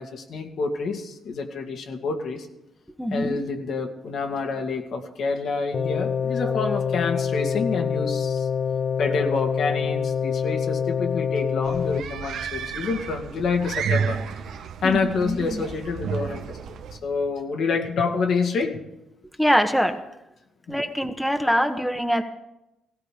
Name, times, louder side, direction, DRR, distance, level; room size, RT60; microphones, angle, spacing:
voice 1, 0.0-2.5 3.1-8.5 9.0-14.2 14.8-16.8 17.0-18.8 20.7-20.8, left 4 dB, 65° left, 3 dB, 2.3 m, -27 dB
voice 2, 3.0-3.4 5.3-5.4 6.4-6.7 14.8-15.6 19.4-20.0 20.7-22.2, equal, ahead, 6 dB, 1.2 m, -24 dB
sound 1, 5.7-12.0, left 7 dB, 45° left, 0.5 m, -26 dB
sound 2, 11.6-17.0, right 6 dB, 75° right, 1.2 m, -31 dB
17.0 x 15.5 x 5.1 m, 0.91 s
cardioid pair, 90°, 0 cm